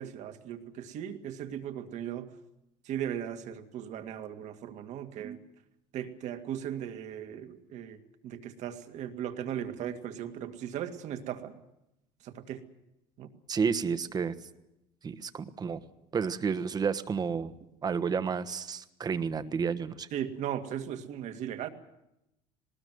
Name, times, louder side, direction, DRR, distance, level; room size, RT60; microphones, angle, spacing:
voice 1, 0.0-2.3 2.9-5.4 5.9-8.0 8.2-11.5 12.2-12.6 13.2-13.3 20.1-21.7, right 10 dB, 60° right, 7 dB, 2.2 m, -37 dB
voice 2, 13.5-14.3 15.0-15.8 16.1-17.6 17.8-20.1, right 6 dB, 30° right, 12 dB, 1.2 m, -31 dB
20.0 x 19.0 x 9.4 m, 0.89 s
cardioid pair, 120°, 13 cm